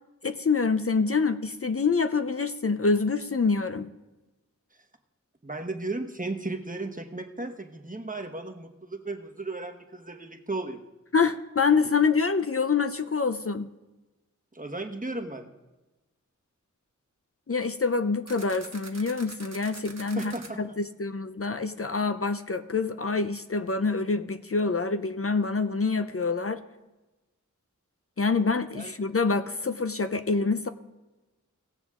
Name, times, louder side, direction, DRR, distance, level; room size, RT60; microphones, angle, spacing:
voice 1, 0.2-3.9 11.1-13.7 17.5-26.6 28.2-30.7, left 4 dB, 45° left, 10 dB, 0.6 m, -26 dB
voice 2, 5.4-10.8 14.5-15.5 20.2-20.6 28.7-28.9, right 2 dB, 25° right, 4 dB, 1.1 m, -35 dB
sound 1, 18.3-20.5, right 3 dB, 60° right, 1.3 m, -44 dB
18.0 x 7.0 x 3.7 m, 1.1 s
wide cardioid pair, 45°, 31 cm